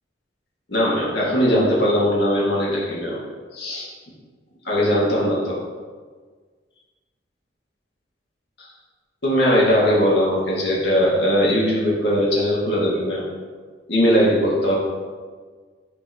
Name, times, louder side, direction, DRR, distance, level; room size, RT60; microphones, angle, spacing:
voice 1, 0.7-3.2 3.5-3.9 4.6-5.6 8.6-8.7 9.2-13.2 13.9-14.8, equal, 65° left, -5 dB, 1.9 m, -20 dB
9.6 x 4.4 x 2.9 m, 1.5 s
head